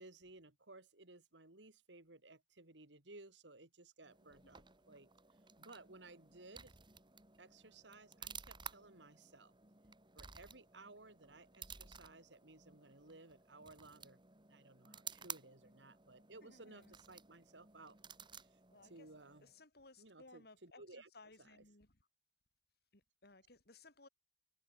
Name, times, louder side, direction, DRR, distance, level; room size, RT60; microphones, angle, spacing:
voice 1, 0.0-5.1 5.6-6.8 7.4-9.5 10.1-14.2 14.5-18.0 18.3-19.5 20.0-21.1 21.4-21.6, right 2 dB, 80° right, 3.0 m, -58 dB
sound 1, 4.0-19.6, right 6 dB, 25° right, 4.0 m, -55 dB
voice 2, 16.4-17.0 18.7-19.1 19.4-21.9 22.9-24.1, left 3 dB, 60° left, 3.4 m, -62 dB
head